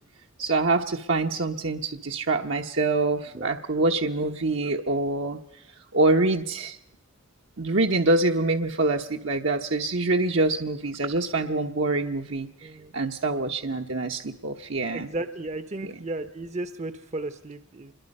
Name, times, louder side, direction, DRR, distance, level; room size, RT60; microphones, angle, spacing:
voice 1, 0.4-6.8 7.6-15.1 15.8-16.0, right 2 dB, 65° right, 3 dB, 1.1 m, -25 dB
voice 2, 12.6-12.9 14.9-17.9, right 2 dB, 35° right, 11 dB, 0.8 m, -34 dB
27.0 x 22.0 x 5.4 m, 0.81 s
head